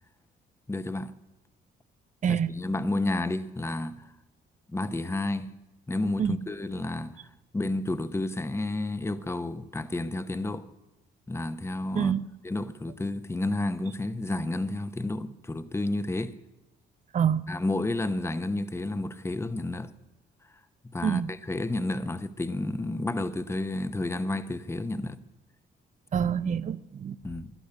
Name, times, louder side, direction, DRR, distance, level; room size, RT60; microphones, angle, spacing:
voice 1, 0.7-1.1 2.3-4.1 4.7-5.5 5.9-7.2 7.5-10.6 11.3-12.2 12.4-16.4 17.5-19.9 20.9-25.2 27.2-27.5, left 2 dB, 15° left, 0.8 m, -31 dB
voice 2, 12.0-12.3 17.1-17.4 21.0-21.3 26.1-27.2, right 8 dB, 40° right, 0.6 m, -26 dB
17.0 x 12.0 x 7.1 m
cardioid pair, 90°, 20 cm